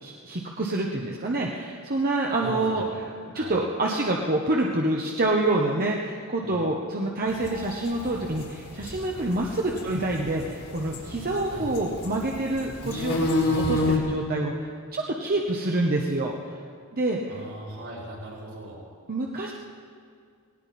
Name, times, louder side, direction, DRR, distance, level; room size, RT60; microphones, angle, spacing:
voice 1, 0.0-2.8 3.3-16.5 16.9-17.3 19.1-19.5, right 2 dB, 45° right, -1 dB, 1.1 m, -27 dB
voice 2, 2.3-2.9 3.3-3.6 6.4-6.5 11.4-11.7 17.3-18.8, right 1 dB, 75° right, -4 dB, 5.6 m, -38 dB
sound 1, 7.3-14.0, left 2 dB, 70° left, 3.8 m, -29 dB
18.5 x 18.0 x 4.3 m, 2.1 s
head